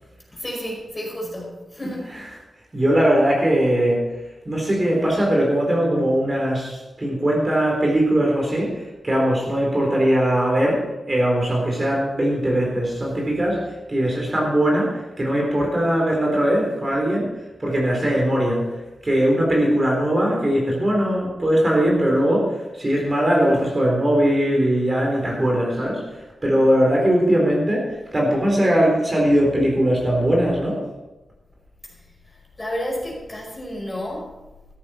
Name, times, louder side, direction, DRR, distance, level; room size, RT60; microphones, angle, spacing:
voice 1, 0.3-2.1 4.6-4.7 31.9-34.3, equal, 20° left, -2 dB, 5.3 m, -31 dB
voice 2, 2.7-4.1 4.5-13.6 13.9-17.3 17.6-18.7 19.0-26.0 26.4-30.8, equal, 25° right, -2 dB, 4.0 m, -20 dB
14.0 x 14.0 x 4.5 m, 1.1 s
wide cardioid pair, 125°, 0 cm